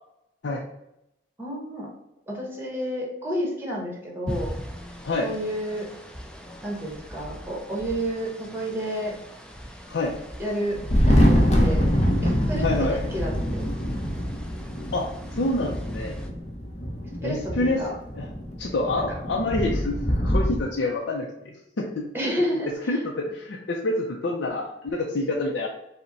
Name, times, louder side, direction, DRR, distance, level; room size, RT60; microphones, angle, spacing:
voice 1, 1.4-1.9 2.3-4.5 5.2-5.9 6.6-9.1 10.4-10.8 11.1-11.9 12.2-13.6 17.2-17.9 22.1-23.0, equal, 10° right, -2 dB, 1.0 m, -30 dB
sound 1, 4.3-16.3, equal, 5° left, 0.4 m, -40 dB
Thunder, 10.7-20.6, equal, 35° left, 0.7 m, -24 dB
voice 2, 12.6-13.0 14.9-16.1 17.2-17.8 18.2-18.3 18.6-22.1 22.9-25.7, left 2 dB, 70° left, -1 dB, 0.5 m, -27 dB
5.4 x 2.1 x 3.9 m, 0.85 s
head